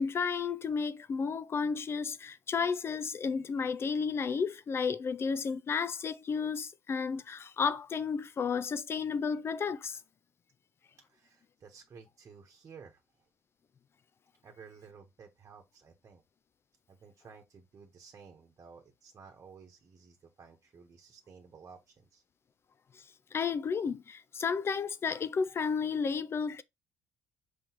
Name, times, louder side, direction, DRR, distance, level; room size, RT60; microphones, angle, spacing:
voice 1, 0.0-10.0 22.9-26.6, left 5 dB, 35° left, 0.4 m, -32 dB
voice 2, 11.1-13.0 14.4-16.2 16.9-22.2, right 6 dB, 40° right, 1.2 m, -54 dB
5.6 x 3.1 x 3.0 m
supercardioid pair, 75°, 7 cm